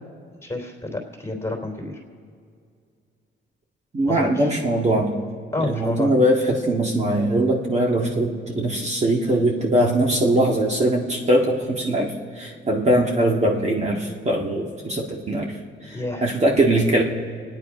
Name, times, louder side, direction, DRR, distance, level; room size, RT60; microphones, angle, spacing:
voice 1, 0.4-2.0 4.1-4.5 5.5-6.1 15.9-16.2, left 2 dB, 15° left, 1 dB, 3.1 m, -29 dB
voice 2, 3.9-5.2 5.6-15.5 15.8-17.0, right 1 dB, 35° right, -1 dB, 1.9 m, -21 dB
26.0 x 9.8 x 5.0 m, 2.2 s
cardioid pair, 90°, 20 cm